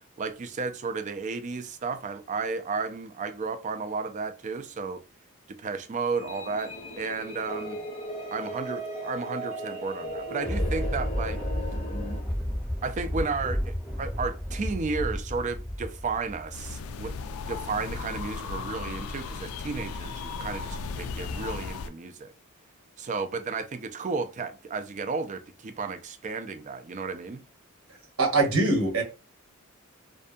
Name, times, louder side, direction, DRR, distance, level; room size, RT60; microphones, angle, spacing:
voice 1, 0.2-5.0 5.6-7.8 8.3-11.4 12.8-22.3 23.0-27.4, right 4 dB, 35° right, 0.4 m, -33 dB
sound 1, 6.2-12.2, equal, 25° left, 0.6 m, -37 dB
Thunder, 10.0-17.6 18.0-18.1, equal, 5° left, 0.9 m, -32 dB
sound 2, 16.5-21.9, left 4 dB, 75° left, 0.3 m, -36 dB
voice 2, 28.2-29.0, right 3 dB, 75° right, 1.0 m, -22 dB
2.6 x 2.5 x 2.2 m
head